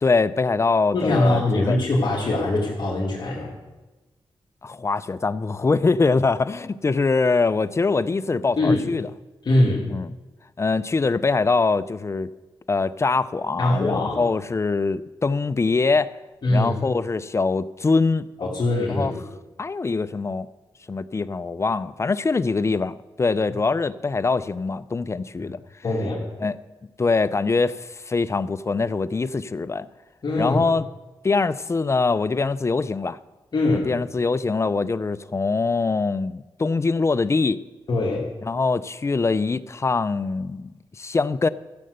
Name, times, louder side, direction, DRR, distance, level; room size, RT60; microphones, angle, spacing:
voice 1, 0.0-1.8 4.6-9.1 9.9-10.1 10.6-12.3 12.7-16.1 16.5-18.3 18.9-19.1 19.6-20.5 20.9-25.6 26.4-26.6 27.0-29.9 30.4-30.8 31.2-33.2 33.7-37.6 38.4-40.7 41.0-41.5, left 4 dB, 30° left, 0.5 m, -23 dB
voice 2, 0.9-3.6 8.6-8.9 9.4-9.9 13.6-14.2 16.4-16.7 18.4-19.2 25.8-26.3 30.2-30.6 33.5-33.9 37.9-38.3, left 2 dB, 50° left, 2.7 m, -22 dB
15.0 x 7.7 x 6.7 m
cardioid pair, 85°, 9 cm